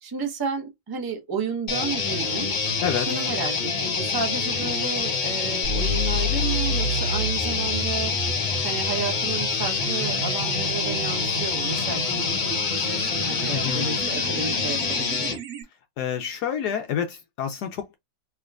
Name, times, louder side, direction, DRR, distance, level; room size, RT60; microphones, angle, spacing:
voice 1, 0.0-2.5 2.9-8.1 8.6-15.4, right 5 dB, 25° right, 0.4 m, -32 dB
sound 1, 1.7-15.4, left 5 dB, 90° left, 0.4 m, -26 dB
voice 2, 2.8-3.2 13.5-13.9 16.0-17.9, left 8 dB, 70° left, 1.0 m, -28 dB
sound 2, 5.6-15.6, equal, 65° right, 1.3 m, -32 dB
3.4 x 2.9 x 2.3 m
omnidirectional pair, 2.0 m